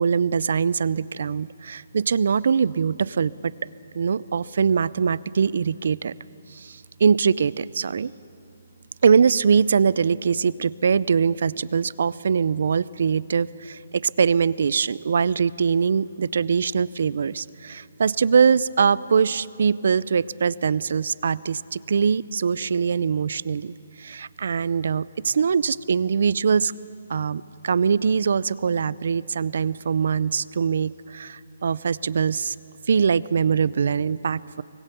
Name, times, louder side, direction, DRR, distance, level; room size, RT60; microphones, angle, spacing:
voice 1, 0.0-3.5 3.9-6.1 6.5-8.1 9.0-26.7 27.1-32.5 32.9-34.6, right 6 dB, 60° right, 20 dB, 0.5 m, -22 dB
24.0 x 19.0 x 6.9 m, 2.7 s
hypercardioid pair, 165°, 0 cm